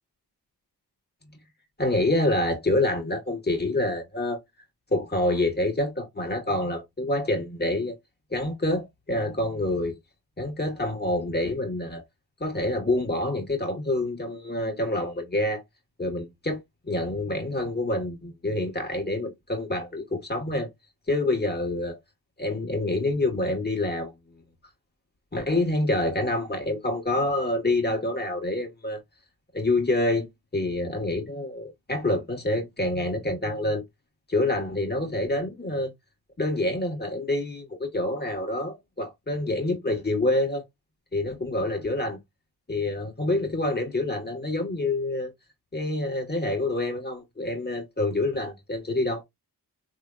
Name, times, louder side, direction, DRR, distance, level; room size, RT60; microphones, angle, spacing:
voice 1, 1.8-4.4 4.9-7.9 8.3-10.0 10.4-12.0 12.4-15.6 16.0-20.7 21.1-22.0 22.4-24.1 25.3-29.0 29.5-30.3 30.5-33.8 34.3-35.9 36.4-40.6 41.1-42.2 42.7-45.3 45.7-49.2, left 2 dB, 25° left, 1.6 m, -27 dB
3.3 x 3.0 x 2.4 m
cardioid pair, 50°, 40 cm